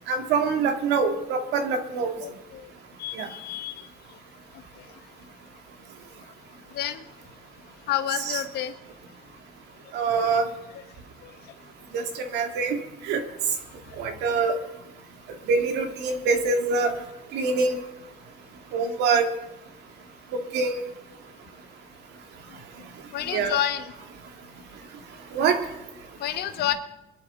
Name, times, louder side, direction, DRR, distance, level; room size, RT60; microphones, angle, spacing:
voice 1, 0.1-2.1 3.2-3.3 8.3-8.4 9.9-10.4 11.9-12.0 12.3-12.8 13.1-13.2 14.0-14.6 15.5-16.9 17.3-17.8 18.7-19.3 20.3-20.8 23.3-23.6 25.3-25.6, right 4 dB, 85° right, 6 dB, 1.9 m, -24 dB
voice 2, 2.2-2.6 3.0-3.8 6.7-7.0 7.9-8.7 23.1-23.9 26.2-26.7, left 12 dB, 70° left, 9 dB, 1.0 m, -29 dB
23.0 x 11.5 x 3.7 m, 0.98 s
cardioid pair, 110°, 17 cm